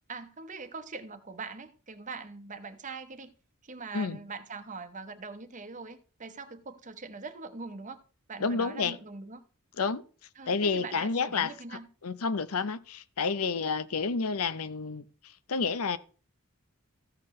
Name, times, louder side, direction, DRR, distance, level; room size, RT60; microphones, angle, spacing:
voice 1, 0.1-3.3 3.6-8.0 8.3-9.4 10.4-11.9, right 4 dB, 35° right, 0.9 m, -42 dB
voice 2, 8.4-9.0 9.8-10.0 10.5-11.5 12.0-15.0 15.5-16.0, left 4 dB, 80° left, 0.7 m, -29 dB
14.5 x 6.6 x 3.2 m
head